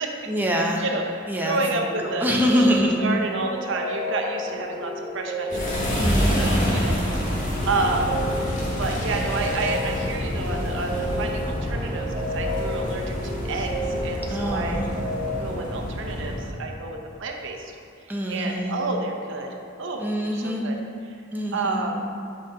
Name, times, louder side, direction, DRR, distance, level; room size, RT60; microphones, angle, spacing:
voice 1, 0.3-0.8 1.3-1.6 2.0-3.0 5.9-6.7 14.3-14.9 18.1-18.8 20.0-20.7 21.3-22.0, equal, 10° right, -1 dB, 0.6 m, -24 dB
voice 2, 0.8-2.3 2.5-2.7 3.0-7.0 7.4-8.2 8.8-13.8 14.0-14.8 15.4-17.7 18.3-19.5 19.8-20.8 21.0-21.2 21.5-22.0, right 3 dB, 65° right, 2 dB, 0.7 m, -30 dB
sound 1, 1.9-15.3, equal, 45° right, 1.4 m, -33 dB
sound 2, 5.5-16.5, equal, 40° left, 1.5 m, -27 dB
7.7 x 5.2 x 3.9 m, 2.3 s
head